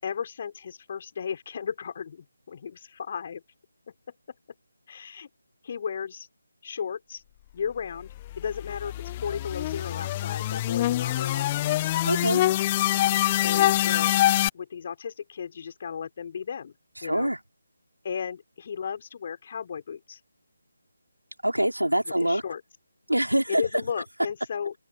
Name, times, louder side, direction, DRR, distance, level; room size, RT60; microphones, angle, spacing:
voice 1, 0.0-3.4 4.9-5.3 5.6-6.3 6.6-7.2 7.5-11.9 13.4-14.2 14.5-16.7 17.0-17.3 18.0-20.2 22.1-22.6 23.5-24.7, left 7 dB, 35° left, 5.0 m, -35 dB
sound 1, 8.1-14.5, left 15 dB, 20° left, 1.0 m, -25 dB
voice 2, 12.0-12.4 17.0-17.4 21.4-22.4 23.1-23.6, right 1 dB, 90° right, 4.5 m, -24 dB
open air
figure-of-eight pair, 155°, 0 cm